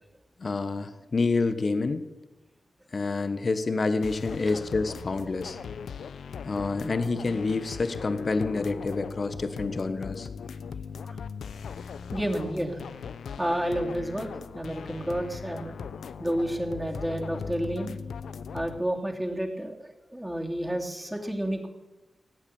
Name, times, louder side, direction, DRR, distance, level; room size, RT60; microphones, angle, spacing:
voice 1, 0.4-2.0 2.9-5.6 6.4-10.3, left 3 dB, 55° left, 10 dB, 1.1 m, -28 dB
sound 1, 4.0-18.8, left 6 dB, 80° left, 0.7 m, -39 dB
voice 2, 12.1-12.8 13.4-14.3 14.5-15.8 16.2-17.9 18.5-21.7, right 1 dB, 10° right, 0 dB, 2.9 m, -30 dB
18.0 x 8.2 x 8.7 m, 1.1 s
cardioid pair, 45°, 0 cm